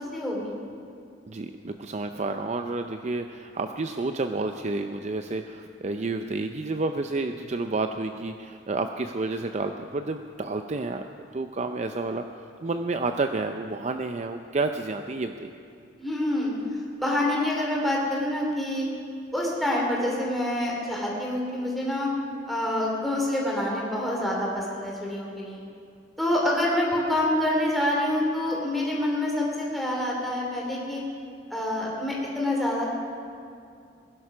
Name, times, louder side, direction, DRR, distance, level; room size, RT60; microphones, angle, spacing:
voice 1, 0.1-0.6 16.0-16.5 17.0-18.9 19.3-22.1 22.5-25.6 26.2-31.0 31.5-32.9, left 1 dB, ahead, -4 dB, 3.1 m, -27 dB
voice 2, 1.3-11.0 11.3-12.2 12.6-15.5, right 3 dB, 40° right, 7 dB, 0.5 m, -30 dB
20.0 x 11.0 x 6.0 m, 2.4 s
head